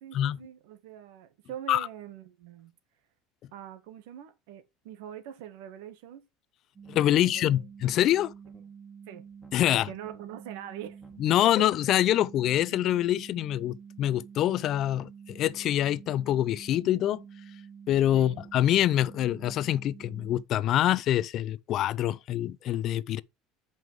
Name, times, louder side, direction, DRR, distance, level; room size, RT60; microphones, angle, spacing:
voice 1, 0.0-2.7 3.5-6.3 7.1-7.5 9.1-9.2 9.7-11.0 11.4-11.5 18.1-18.4, right 10 dB, 80° right, 1.7 m, -43 dB
sound 1, 6.8-7.3 7.7-8.6 9.3-10.2 10.9-11.8, equal, 5° left, 2.1 m, -59 dB
sound 2, 6.8-20.4, right 7 dB, 15° right, 1.5 m, -48 dB
voice 2, 6.9-8.3 9.5-9.9 11.2-17.2 17.9-23.2, left 12 dB, 45° left, 0.4 m, -25 dB
7.9 x 5.4 x 4.7 m
cardioid pair, 145°, 0 cm